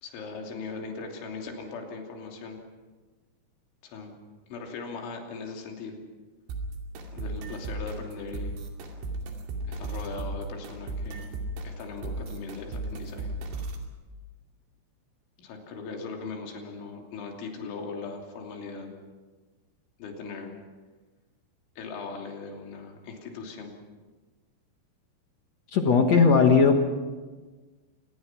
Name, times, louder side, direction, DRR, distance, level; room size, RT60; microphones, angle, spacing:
voice 1, 0.0-2.6 3.8-4.1 4.5-5.9 7.1-8.6 9.6-11.3 11.6-13.3 15.4-18.9 20.0-20.5 21.8-23.8, left 4 dB, 85° left, 1 dB, 5.4 m, -39 dB
sound 1, 6.5-13.9, right 2 dB, 90° right, 5.0 m, -36 dB
voice 2, 25.7-26.8, left 5 dB, 70° left, 4 dB, 1.6 m, -18 dB
26.5 x 20.5 x 6.0 m, 1.3 s
omnidirectional pair, 5.3 m